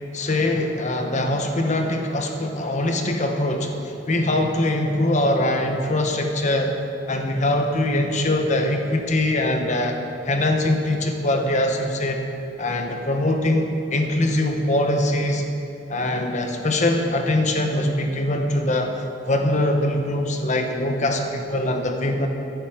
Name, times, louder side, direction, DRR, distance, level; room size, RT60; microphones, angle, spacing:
voice 1, 0.1-6.7 7.1-10.0 10.2-12.2 12.6-15.4 15.9-18.9 19.3-22.3, left 1 dB, 40° left, 4 dB, 1.3 m, -22 dB
15.0 x 11.0 x 5.1 m, 2.6 s
head